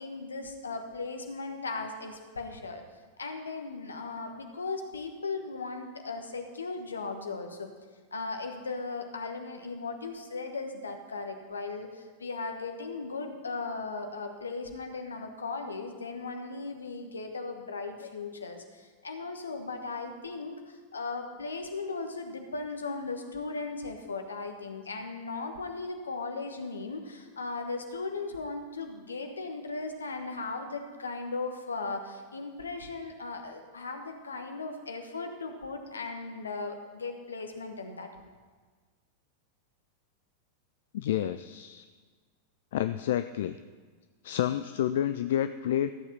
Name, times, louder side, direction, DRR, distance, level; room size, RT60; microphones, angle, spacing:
voice 1, 0.0-2.8 3.2-7.7 8.1-38.1, left 3 dB, 75° left, 5 dB, 1.3 m, -37 dB
voice 2, 40.9-41.9 42.7-43.6 44.2-45.9, left 11 dB, 55° left, 11 dB, 0.3 m, -29 dB
14.0 x 7.3 x 5.7 m, 1.5 s
figure-of-eight pair, 90°, 0 cm